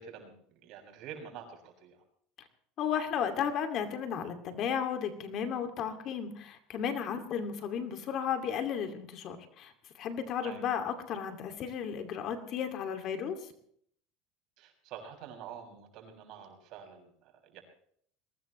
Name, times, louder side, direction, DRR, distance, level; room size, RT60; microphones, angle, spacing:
voice 1, 0.0-2.0 10.4-10.6 14.6-17.6, right 7 dB, 55° right, 3 dB, 6.5 m, -47 dB
voice 2, 2.8-9.7 10.0-13.4, left 8 dB, 50° left, 7 dB, 2.5 m, -34 dB
22.0 x 19.5 x 3.2 m, 0.63 s
supercardioid pair, 125°, 0 cm